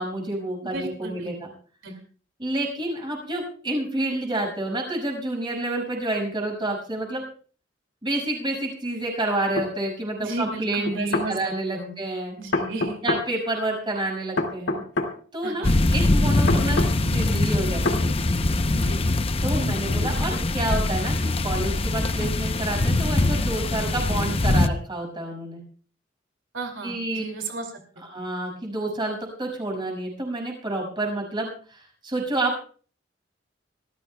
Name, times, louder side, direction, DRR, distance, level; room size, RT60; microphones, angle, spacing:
voice 1, 0.0-1.5 2.4-7.2 8.0-12.3 13.0-14.8 15.3-18.1 19.4-25.6 26.8-27.2 28.1-32.6, right 1 dB, 25° right, 1 dB, 6.0 m, -29 dB
voice 2, 0.6-1.3 1.8-1.9 10.2-12.0 12.4-13.0 15.4-15.7 18.7-19.1 26.5-28.0, right 3 dB, 90° right, 4 dB, 2.6 m, -34 dB
sound 1, 9.6-9.7 10.8-11.3 12.5-13.3 14.4-15.1 16.5-16.9 17.8-18.0, left 2 dB, 65° left, 2.4 m, -25 dB
sound 2, 15.6-24.7, left 2 dB, 30° left, 0.7 m, -23 dB
26.0 x 14.5 x 2.3 m, 0.41 s
head